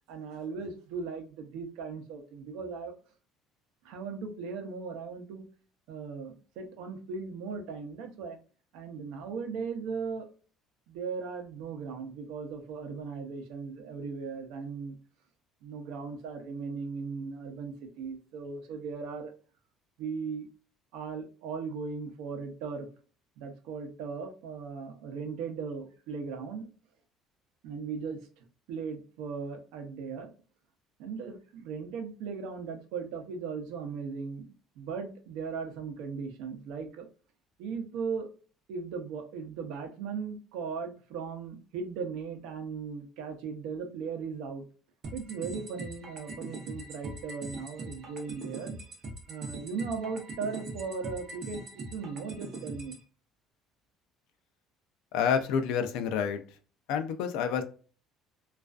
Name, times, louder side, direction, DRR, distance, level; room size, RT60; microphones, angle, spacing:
voice 1, 0.1-2.9 3.8-5.5 5.9-8.4 8.7-10.3 10.9-15.0 15.6-19.3 20.0-20.5 20.9-22.9 23.4-26.7 27.6-30.3 31.0-34.5 34.8-37.1 37.6-38.3 38.7-44.6 45.1-48.8 49.3-53.0, right 5 dB, 80° right, 0.6 m, -38 dB
sound 1, 45.0-53.0, right 3 dB, 35° right, 0.7 m, -42 dB
voice 2, 55.1-56.4 56.9-57.6, left 7 dB, 70° left, 0.4 m, -28 dB
2.4 x 2.3 x 2.3 m
cardioid pair, 180°, 0 cm